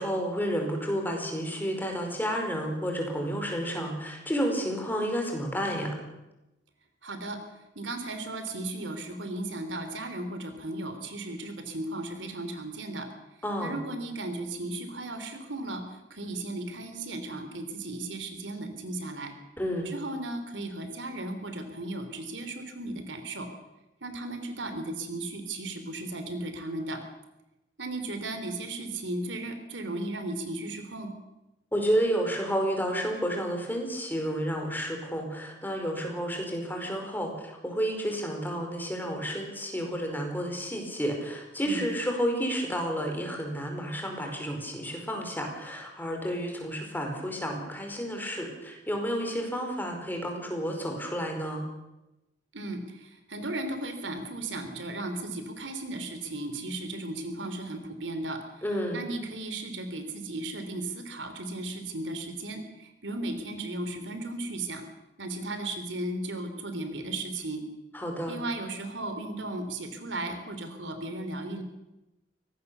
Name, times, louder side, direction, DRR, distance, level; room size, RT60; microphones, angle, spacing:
voice 1, 0.0-6.0 13.4-13.8 19.6-19.9 31.7-51.6 58.6-59.0 67.9-68.3, equal, 10° left, 2 dB, 4.8 m, -31 dB
voice 2, 7.0-7.4 7.7-13.1 13.6-19.3 19.8-23.5 24.0-27.0 27.8-31.1 41.6-41.9 52.5-58.6 58.9-64.8 65.2-67.6 68.3-71.6, right 2 dB, 75° right, 8 dB, 3.4 m, -35 dB
23.5 x 18.5 x 6.9 m, 0.95 s
head